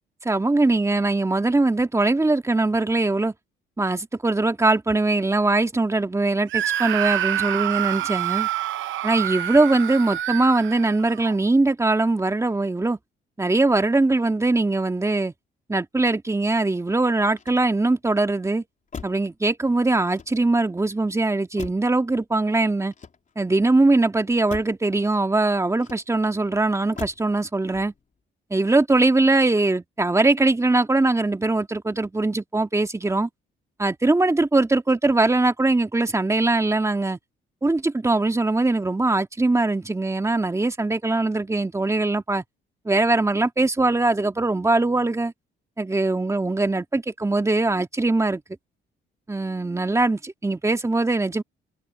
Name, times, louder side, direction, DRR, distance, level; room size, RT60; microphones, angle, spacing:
voice 1, 0.2-3.3 3.8-8.5 9.0-13.0 13.4-15.3 15.7-18.6 19.0-22.9 23.4-27.9 28.5-33.3 33.8-37.2 37.6-42.4 42.9-45.3 45.8-48.4 49.3-51.4, right 2 dB, 15° right, 2.1 m, -21 dB
Screaming, 6.5-11.4, right 13 dB, 75° right, 0.8 m, -27 dB
Motor vehicle (road), 17.3-18.1 18.9-19.4 20.0-20.7 21.6-22.0 22.8-23.6 24.5-24.9 25.8-26.4 27.0-27.4 27.7-28.2, left 5 dB, 40° left, 3.9 m, -41 dB
cardioid pair, 90°, 20 cm